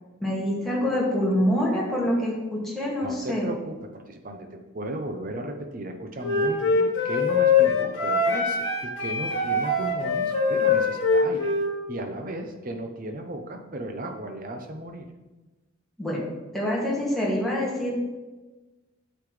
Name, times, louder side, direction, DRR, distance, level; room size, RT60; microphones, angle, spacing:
voice 1, 0.2-3.5 16.0-16.2 16.5-17.9, equal, ahead, -6 dB, 2.2 m, -25 dB
voice 2, 3.0-11.5 11.9-15.1, right 1 dB, 40° right, 5 dB, 0.8 m, -35 dB
Wind instrument woodwind instrument, 6.2-11.7, left 4 dB, 60° left, 1.8 m, -23 dB
8.4 x 8.1 x 3.3 m, 1.1 s
head